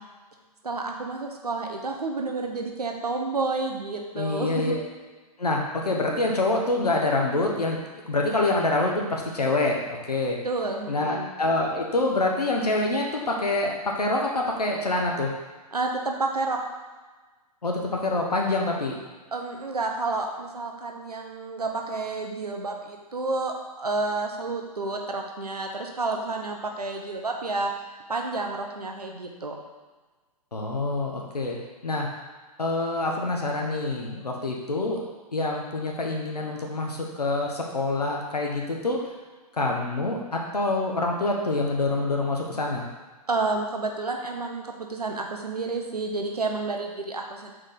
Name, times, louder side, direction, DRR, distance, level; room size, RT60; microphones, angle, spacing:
voice 1, 0.6-4.8 10.4-11.3 15.7-16.6 19.3-27.7 28.1-29.5 43.3-47.5, right 3 dB, 75° right, 2 dB, 1.1 m, -30 dB
voice 2, 4.1-4.8 5.4-7.8 8.1-9.8 10.1-10.4 10.9-15.3 17.6-19.0 30.5-31.6 31.8-32.1 32.6-35.0 35.3-39.1 39.5-42.8, left 2 dB, 75° left, 0 dB, 1.2 m, -26 dB
6.3 x 4.9 x 3.8 m, 1.3 s
figure-of-eight pair, 115°, 20 cm